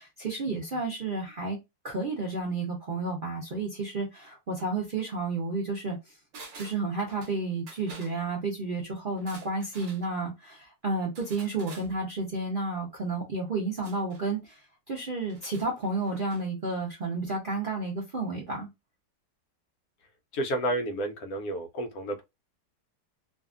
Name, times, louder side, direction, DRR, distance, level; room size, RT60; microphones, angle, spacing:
voice 1, 0.0-1.6 1.8-6.0 6.6-14.6 14.9-18.7, right 3 dB, 85° right, 0.4 m, -31 dB
sound 1, 6.3-7.4 7.7-8.1 9.1-10.0 11.1-11.9 13.8-14.2 15.2-16.4 16.7-16.8, right 3 dB, 55° right, 1.2 m, -48 dB
voice 2, 20.3-22.2, right 1 dB, 65° left, 0.9 m, -31 dB
2.8 x 2.5 x 2.4 m
omnidirectional pair, 1.9 m